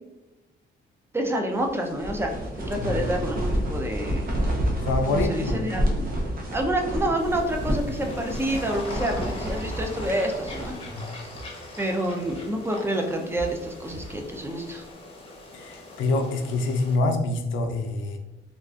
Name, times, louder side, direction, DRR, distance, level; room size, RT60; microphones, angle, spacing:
voice 1, 1.1-4.3 5.1-6.1 6.5-10.8 11.8-14.8, right 1 dB, 10° right, 2 dB, 0.5 m, -28 dB
sound 1, 1.6-11.1 11.3-11.5 12.1-12.5 13.1-14.2, equal, 50° right, 0.7 m, -30 dB
voice 2, 4.8-5.5 10.9-11.0 15.5-18.2, left 2 dB, 80° left, 5 dB, 0.5 m, -26 dB
sound 2, 7.2-17.0, left 2 dB, 30° left, 0.7 m, -41 dB
3.6 x 2.4 x 2.4 m, 1.0 s
cardioid pair, 90°, 20 cm